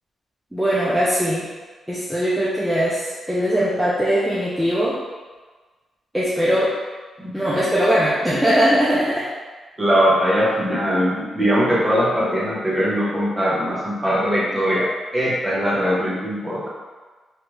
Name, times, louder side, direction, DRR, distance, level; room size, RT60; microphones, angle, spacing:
voice 1, 0.5-1.4 1.9-5.0 6.1-6.7 7.3-9.3, equal, ahead, -9 dB, 0.5 m, -20 dB
voice 2, 7.2-7.7 9.8-14.9 15.1-16.7, equal, 20° right, -6 dB, 0.9 m, -21 dB
3.2 x 2.4 x 3.0 m, 1.3 s
cardioid pair, 125°, 0 cm